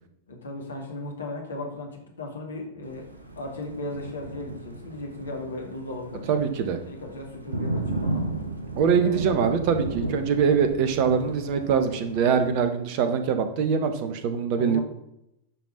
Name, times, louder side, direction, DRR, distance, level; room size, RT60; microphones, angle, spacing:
voice 1, 0.3-3.1 3.4-6.4 6.9-8.3 9.0-9.3 11.1-11.3 14.5-14.8, left 2 dB, 70° left, 1 dB, 2.2 m, -36 dB
Thunder, 2.8-12.5, right 2 dB, 80° right, 1.4 m, -34 dB
voice 2, 6.3-6.8 8.8-14.8, right 6 dB, 45° right, 8 dB, 1.3 m, -23 dB
9.9 x 5.6 x 5.8 m, 0.80 s
figure-of-eight pair, 90°, 0 cm